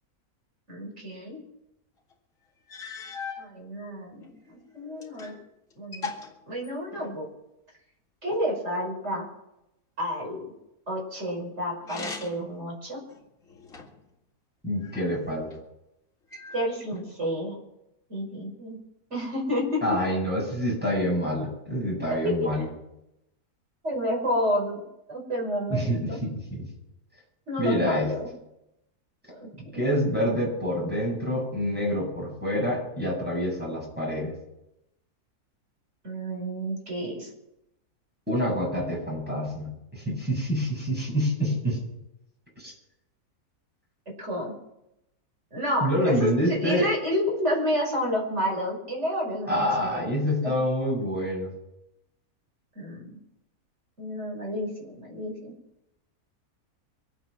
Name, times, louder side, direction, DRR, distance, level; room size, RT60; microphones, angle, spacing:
voice 1, 0.7-1.4 3.4-5.3 5.8-6.1 6.5-7.3 8.2-9.2 10.0-10.4 10.9-13.0 16.5-17.6 18.1-18.8 19.1-20.0 22.2-22.5 23.8-24.8 25.1-26.2 27.5-28.3 29.3-29.8 36.0-37.3 44.2-44.5 45.5-50.1 50.4-50.6 52.8-53.2 54.0-55.5, equal, 45° right, -2 dB, 5.7 m, -30 dB
sound 1, 2.1-2.2 2.7-3.4 4.2-5.4 5.7-7.2 11.8-12.5 13.1-14.1 14.8-15.6 16.3-17.1, left 4 dB, 55° left, 2.5 m, -40 dB
voice 2, 14.6-15.5 19.8-22.7 25.7-26.6 27.6-28.1 29.7-34.3 38.3-41.8 42.6-42.7 45.8-46.9 49.5-51.5, equal, 5° right, -4 dB, 7.9 m, -27 dB
24.0 x 9.2 x 6.0 m, 0.87 s
omnidirectional pair, 1.6 m